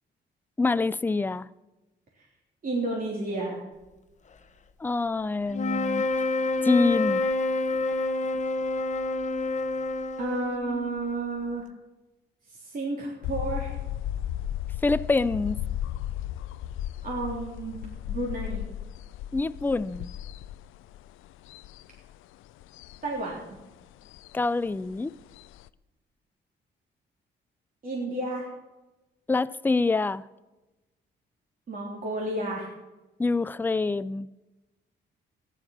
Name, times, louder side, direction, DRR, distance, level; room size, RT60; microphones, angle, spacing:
voice 1, 0.6-1.5 4.8-6.1 6.6-7.2 14.8-15.6 19.3-20.1 24.3-25.1 29.3-30.2 33.2-34.3, left 3 dB, 10° left, 0.4 m, -25 dB
voice 2, 2.6-3.6 10.2-11.6 12.6-13.7 17.0-18.7 23.0-23.5 27.8-28.5 31.7-32.7, right 2 dB, 45° right, 3.5 m, -31 dB
sound 1, 5.5-10.9, left 2 dB, 35° left, 0.9 m, -28 dB
sound 2, 13.2-25.7, left 12 dB, 85° left, 0.5 m, -35 dB
14.0 x 11.0 x 5.8 m
cardioid pair, 90°, 20 cm